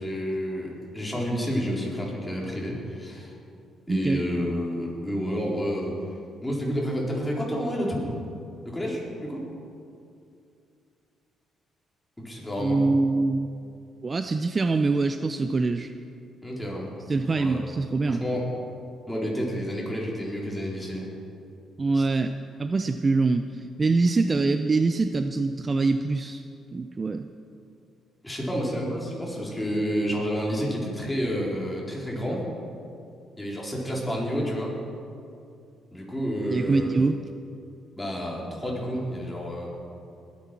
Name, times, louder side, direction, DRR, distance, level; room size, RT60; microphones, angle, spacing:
voice 1, 0.0-3.3 3.9-5.9 6.4-8.1 8.6-9.5 12.2-12.8 16.4-16.9 17.4-17.6 18.1-18.5 19.1-21.1 21.9-22.1 28.2-32.4 33.4-34.7 35.9-36.9 38.0-39.7, equal, 10° left, -3 dB, 4.3 m, -29 dB
voice 2, 3.9-4.2 12.6-13.5 14.0-15.9 17.1-18.2 21.8-22.3 22.6-26.4 26.7-27.3 36.5-37.2, right 3 dB, 30° right, 9 dB, 0.5 m, -24 dB
20.5 x 8.6 x 6.0 m, 2.5 s
cardioid pair, 85°, 0 cm